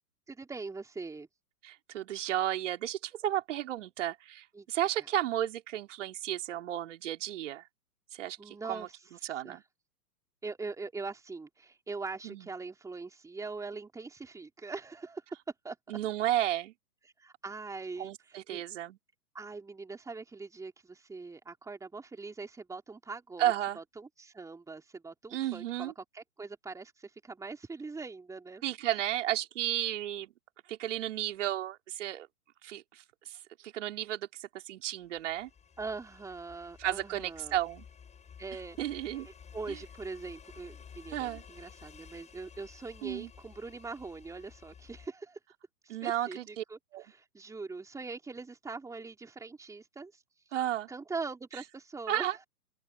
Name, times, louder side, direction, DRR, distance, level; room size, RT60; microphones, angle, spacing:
voice 1, 0.3-1.3 4.5-4.7 8.4-9.0 9.2-9.6 10.4-15.2 15.6-15.8 17.2-18.6 19.3-28.6 35.8-37.6 38.4-38.8 39.1-39.2 39.5-45.4 45.8-50.2 50.9-52.3, right 4 dB, 5° right, 3.7 m, -42 dB
voice 2, 1.6-7.7 8.1-8.9 9.2-9.6 12.2-12.5 15.9-16.7 18.0-19.0 23.4-23.8 25.3-25.9 28.6-30.3 30.7-32.3 32.6-33.4 33.6-35.5 36.8-37.8 38.8-39.3 39.7-39.8 41.1-41.4 43.0-43.3 45.9-46.6 46.9-47.0 50.5-50.9 52.1-52.4, right 12 dB, 50° right, 4.2 m, -33 dB
sound 1, 35.0-45.1, left 7 dB, 15° left, 7.3 m, -53 dB
open air
figure-of-eight pair, 115°, 46 cm